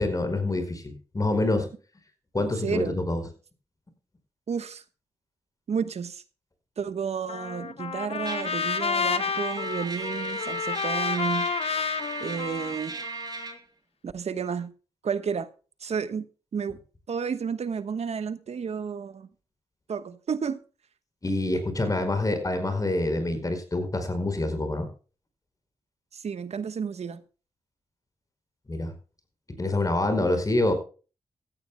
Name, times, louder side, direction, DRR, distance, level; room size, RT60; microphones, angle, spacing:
voice 1, 0.0-1.7 2.3-3.2 21.2-24.9 28.7-28.9 29.6-30.7, left 2 dB, 30° left, 4.9 m, -26 dB
voice 2, 2.6-3.0 4.5-4.8 5.7-6.2 6.8-11.5 12.2-13.0 14.0-14.7 15.0-15.5 15.8-16.2 16.5-16.8 17.1-19.3 19.9-20.6 26.1-27.2, right 6 dB, 70° right, 1.2 m, -31 dB
Trumpet, 7.3-13.5, left 6 dB, 60° left, 0.7 m, -30 dB
Trumpet 2, 8.2-13.6, right 4 dB, 35° right, 3.9 m, -36 dB
17.0 x 14.0 x 2.2 m
cardioid pair, 75°, 12 cm